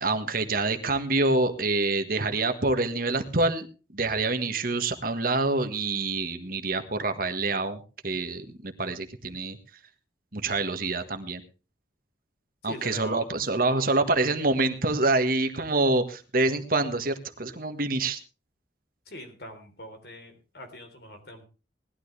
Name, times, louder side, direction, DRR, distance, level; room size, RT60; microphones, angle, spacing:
voice 1, 0.0-3.7 3.9-9.6 10.3-11.4 12.6-18.2, right 2 dB, 50° right, 8 dB, 1.6 m, -26 dB
voice 2, 12.6-13.3 13.7-14.0 19.1-21.5, equal, 60° left, 6 dB, 3.8 m, -42 dB
19.0 x 12.5 x 3.4 m, 0.34 s
head